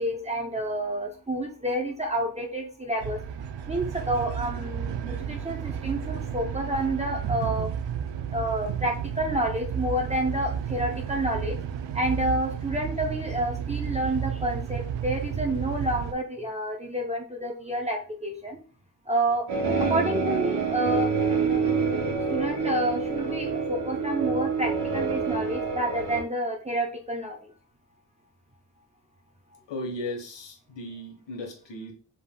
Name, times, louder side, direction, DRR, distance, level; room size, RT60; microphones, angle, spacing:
voice 1, 0.0-3.2 3.7-7.7 8.3-11.6 11.9-18.6 19.1-19.4 19.8-21.1 22.3-27.5, right 1 dB, 15° right, 0.6 m, -29 dB
sound 1, 3.0-16.1, right 8 dB, 80° right, 0.6 m, -32 dB
sound 2, 19.5-26.2, right 5 dB, 60° right, 1.2 m, -27 dB
voice 2, 29.7-31.9, left 1 dB, 75° left, 1.3 m, -36 dB
5.4 x 3.4 x 2.2 m
wide cardioid pair, 160°, 43 cm